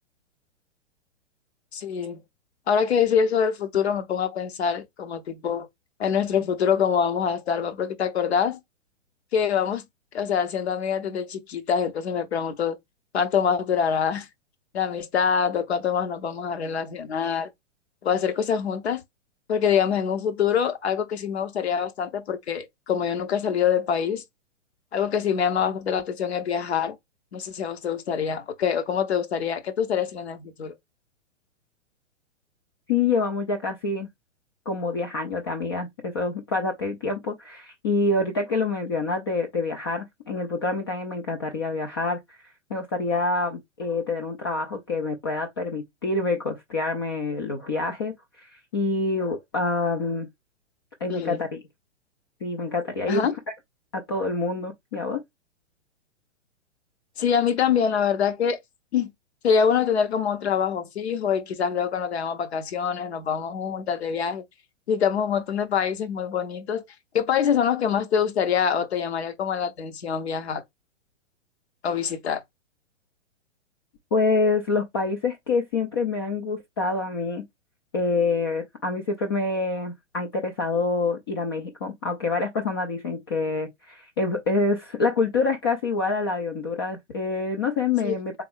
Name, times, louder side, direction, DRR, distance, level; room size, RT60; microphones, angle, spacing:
voice 1, 1.7-2.2 2.7-5.7 6.0-8.6 9.3-9.8 10.1-12.8 13.1-14.3 14.7-17.5 18.0-19.0 19.5-24.2 24.9-27.0 27.3-30.7 51.1-51.4 53.1-53.3 57.2-58.6 58.9-59.1 59.4-64.4 64.9-66.8 67.1-70.6 71.8-72.4 88.0-88.1, left 7 dB, 60° left, 0.9 m, -25 dB
voice 2, 32.9-34.1 34.7-42.4 42.7-50.3 51.0-51.6 52.4-53.3 53.9-55.2 74.1-77.4 77.9-88.4, left 3 dB, 20° left, 0.3 m, -26 dB
3.7 x 3.5 x 3.4 m
figure-of-eight pair, 115°, 37 cm